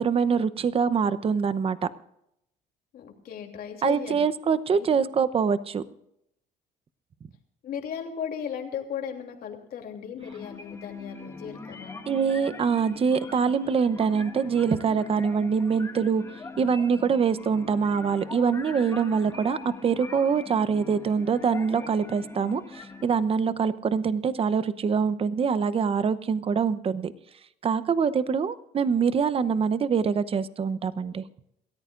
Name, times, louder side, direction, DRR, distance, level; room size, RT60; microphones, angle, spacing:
voice 1, 0.0-1.8 3.8-5.8 12.1-16.2 16.6-27.1 27.6-31.2, right 6 dB, 35° right, 14 dB, 0.8 m, -24 dB
voice 2, 2.9-4.2 4.8-5.0 7.6-12.0, left 8 dB, 65° left, 3 dB, 3.1 m, -36 dB
sound 1, 10.2-23.2, left 3 dB, 15° left, 1.5 m, -42 dB
28.0 x 14.0 x 2.5 m, 0.79 s
cardioid pair, 110°, 17 cm